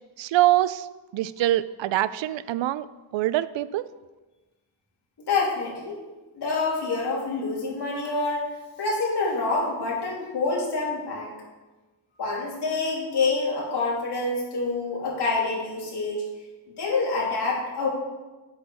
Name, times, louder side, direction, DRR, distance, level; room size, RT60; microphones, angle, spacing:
voice 1, 0.2-0.9 1.1-2.9 3.1-3.8, right 14 dB, 70° right, 16 dB, 0.5 m, -24 dB
voice 2, 5.3-6.0 6.3-8.5 8.8-11.3 12.2-16.2 16.8-17.9, left 3 dB, 60° left, -4 dB, 3.1 m, -27 dB
8.6 x 6.7 x 4.3 m, 1.2 s
cardioid pair, 105°, 46 cm